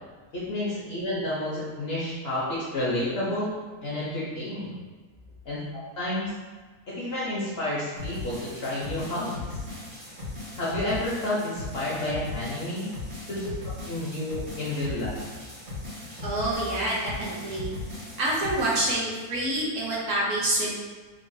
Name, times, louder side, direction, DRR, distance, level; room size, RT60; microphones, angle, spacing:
voice 1, 0.3-3.5 3.8-4.8 5.5-6.3 6.9-9.4 10.6-12.9 13.3-13.5 13.8-15.1, left 1 dB, 60° left, -8 dB, 0.6 m, -30 dB
sound 1, 8.0-18.9, left 3 dB, 85° right, 1.9 m, -38 dB
voice 2, 16.2-17.7 18.2-20.7, right 1 dB, 65° right, -5 dB, 0.9 m, -27 dB
3.8 x 2.1 x 2.6 m, 1.4 s
omnidirectional pair, 1.7 m